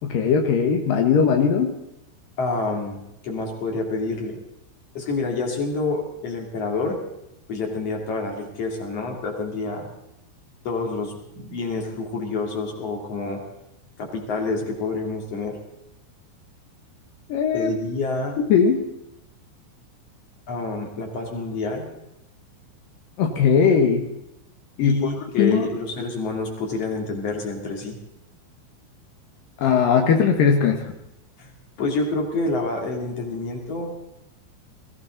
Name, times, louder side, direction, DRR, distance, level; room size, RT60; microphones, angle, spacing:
voice 1, 0.0-1.7 17.3-17.7 18.4-18.8 23.2-24.0 24.8-25.1 25.4-25.7 29.6-30.8, left 6 dB, 80° left, 3 dB, 2.0 m, -19 dB
voice 2, 2.4-3.0 3.2-4.4 4.9-7.0 7.5-9.9 10.6-13.4 14.0-15.6 17.5-18.4 20.5-21.9 24.8-27.9 31.4-31.5 31.8-33.9, left 3 dB, 35° left, 1 dB, 3.2 m, -28 dB
21.5 x 16.5 x 3.9 m, 0.85 s
omnidirectional pair, 5.9 m